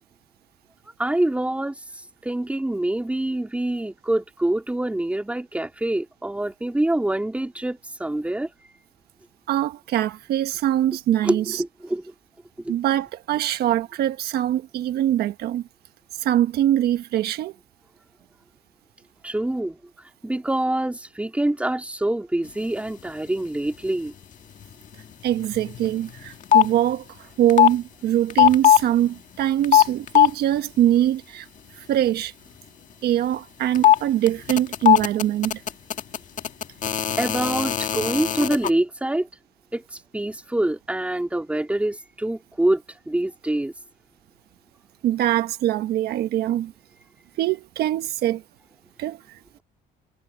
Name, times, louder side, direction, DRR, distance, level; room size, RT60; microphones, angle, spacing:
voice 1, 1.0-1.8 2.2-8.5 11.2-12.0 12.6-12.8 19.2-19.8 20.2-24.1 37.2-39.3 39.7-39.8 40.1-43.7, right 1 dB, 5° right, 3.5 m, -25 dB
voice 2, 9.5-11.6 12.7-15.6 16.2-17.5 25.2-31.5 31.8-32.3 33.0-35.6 45.0-46.7 47.4-48.4 49.0-49.6, right 12 dB, 70° right, 1.3 m, -23 dB
sound 1, 25.4-25.9 26.2-26.7 27.5-27.7 28.3-28.8 29.6-30.3 33.7-34.0 34.3-38.7, left 11 dB, 50° left, 1.9 m, -18 dB
cardioid pair, 110°, 17 cm